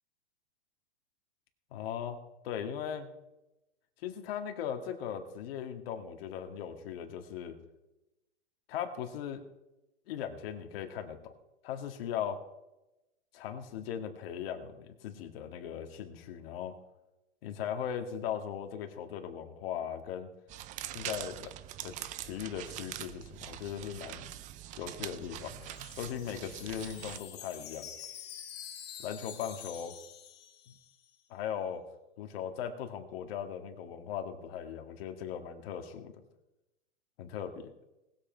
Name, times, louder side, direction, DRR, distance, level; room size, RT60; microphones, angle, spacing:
voice 1, 1.7-2.2 2.4-3.1 4.0-7.6 8.7-9.4 10.1-11.3 11.6-12.4 13.3-16.7 17.4-20.3 20.9-21.5 21.8-24.3 24.8-25.6 26.0-27.9 29.0-29.9 30.7-30.8 31.3-31.8 32.2-36.1 37.2-37.7, left 8 dB, 55° left, 6 dB, 2.1 m, -38 dB
sound 1, 20.5-27.2, right 13 dB, 20° right, 0.5 m, -43 dB
Wind chime, 25.2-31.0, left 9 dB, 30° left, 1.7 m, -48 dB
19.5 x 7.7 x 4.6 m, 0.95 s
hypercardioid pair, 130°, 35 cm